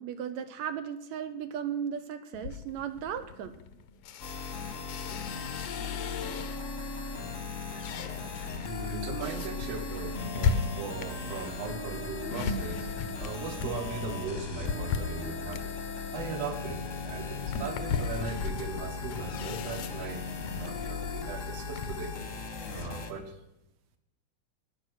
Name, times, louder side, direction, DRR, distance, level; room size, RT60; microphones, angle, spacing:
voice 1, 0.0-3.6, right 8 dB, 75° right, 10 dB, 1.9 m, -36 dB
sound 1, 2.3-6.8 7.3-22.0, left 5 dB, 70° left, 1.7 m, -37 dB
sound 2, 4.2-23.1, left 4 dB, 40° left, 1.1 m, -37 dB
voice 2, 8.7-12.9 13.2-15.7 16.1-20.2 20.5-22.1 22.7-23.4, right 4 dB, 60° right, 7 dB, 2.3 m, -39 dB
17.5 x 9.9 x 6.3 m, 0.91 s
omnidirectional pair, 3.5 m